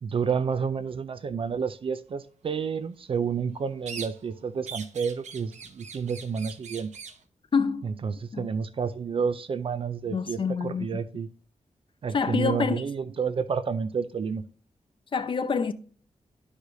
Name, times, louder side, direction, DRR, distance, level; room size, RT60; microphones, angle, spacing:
voice 1, 0.0-6.9 7.8-11.3 12.0-14.4, right 6 dB, 45° right, 0.4 m, -30 dB
sound 1, 3.9-4.4 4.7-7.2, right 5 dB, 70° right, 1.0 m, -41 dB
voice 2, 7.5-7.9 8.3-8.5 10.1-11.0 12.1-12.8 15.1-15.7, left 5 dB, 45° left, 0.6 m, -27 dB
12.0 x 4.8 x 2.6 m
wide cardioid pair, 140°, 12 cm